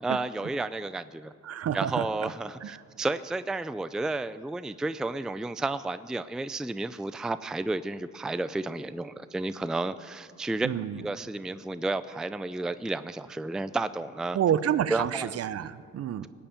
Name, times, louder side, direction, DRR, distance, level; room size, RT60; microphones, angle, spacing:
voice 1, 0.0-1.3 1.7-10.7 11.0-14.4 14.9-15.4, right 2 dB, ahead, 13 dB, 0.4 m, -32 dB
voice 2, 1.5-1.9 10.6-10.9 14.3-16.3, right 9 dB, 55° right, 15 dB, 0.6 m, -28 dB
19.5 x 6.9 x 8.9 m, 2.2 s
cardioid pair, 90°, 30 cm